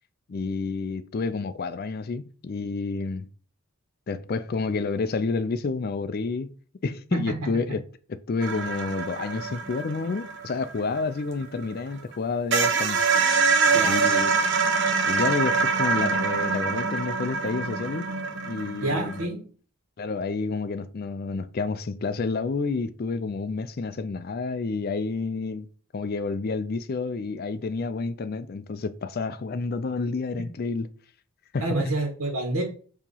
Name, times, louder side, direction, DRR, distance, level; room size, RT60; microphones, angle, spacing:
voice 1, 0.3-3.3 4.1-6.5 6.8-7.8 8.1-13.0 13.8-14.3 15.0-18.1 18.5-19.1 20.0-25.7 25.9-30.9 31.5-31.6, left 4 dB, 45° left, 0.4 m, -29 dB
voice 2, 7.1-7.5 13.7-14.3 18.8-19.4 31.6-32.6, right 2 dB, 80° right, 1.6 m, -28 dB
sound 1, 8.4-11.8 12.1-12.2 12.5-19.2, right 4 dB, 55° right, 0.7 m, -25 dB
6.8 x 3.0 x 5.5 m
head